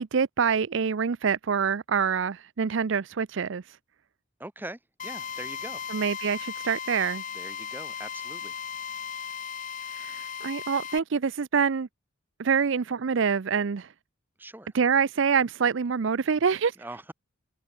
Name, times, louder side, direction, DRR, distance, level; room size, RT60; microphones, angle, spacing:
voice 1, 0.0-3.8 5.9-7.2 9.9-11.9 12.4-13.9 14.7-16.7, right 6 dB, 60° right, 0.5 m, -26 dB
voice 2, 4.4-5.8 7.3-8.6 14.4-14.7 16.7-17.1, right 1 dB, 10° right, 1.1 m, -42 dB
Drill, 5.0-11.0, left 7 dB, 40° left, 1.1 m, -36 dB
head